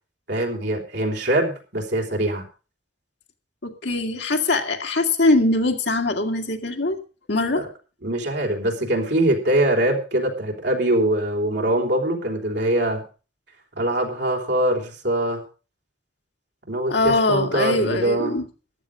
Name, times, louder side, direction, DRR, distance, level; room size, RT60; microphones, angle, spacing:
voice 1, 0.3-2.4 7.5-7.7 8.0-13.0 13.8-15.4 16.7-18.4, right 1 dB, 65° right, 1 dB, 3.7 m, -23 dB
voice 2, 3.6-7.0 7.3-7.7 16.9-18.4, left 2 dB, 70° left, 4 dB, 2.0 m, -22 dB
14.5 x 11.0 x 4.9 m, 0.35 s
head